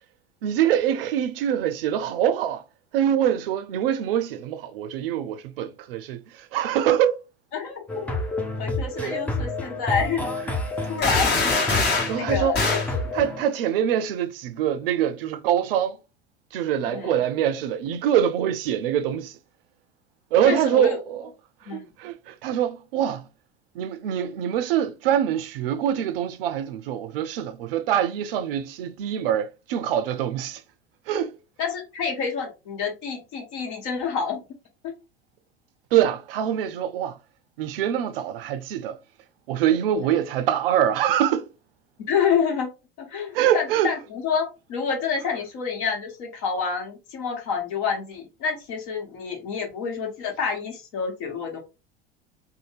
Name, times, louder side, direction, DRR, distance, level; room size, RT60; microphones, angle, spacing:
voice 1, 0.4-2.6 2.9-7.2 9.0-9.2 10.8-10.9 12.1-12.6 13.1-16.0 16.5-19.4 20.3-21.2 21.7-23.3 23.8-30.6 31.1-31.3 35.9-37.2 37.6-39.0 39.5-41.5 43.3-43.9, right 10 dB, 60° right, 0.5 m, -24 dB
voice 2, 7.5-8.2 8.6-10.5 10.9-11.5 12.1-13.1 16.9-17.2 20.5-21.0 21.6-21.8 31.6-34.4 34.8-34.9 39.9-40.1 42.1-42.7 43.0-51.6, left 6 dB, 50° left, 1.3 m, -28 dB
sound 1, 7.9-13.4, left 2 dB, 5° left, 0.5 m, -29 dB
sound 2, 11.0-12.2 12.5-12.9, left 3 dB, 30° left, 1.1 m, -23 dB
2.6 x 2.2 x 3.2 m
figure-of-eight pair, 75°, 32 cm